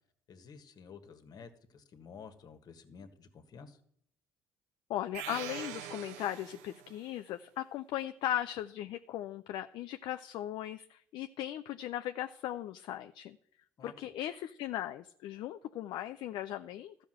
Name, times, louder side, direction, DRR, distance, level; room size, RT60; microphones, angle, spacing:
voice 1, 0.3-3.8 13.8-14.1, left 6 dB, 55° left, 8 dB, 1.5 m, -52 dB
voice 2, 4.9-13.4 13.8-17.0, left 12 dB, 70° left, 9 dB, 0.5 m, -38 dB
sound 1, 5.1-7.0, right 11 dB, 90° right, 0.6 m, -43 dB
13.0 x 5.1 x 7.8 m, 0.67 s
supercardioid pair, 70°, 8 cm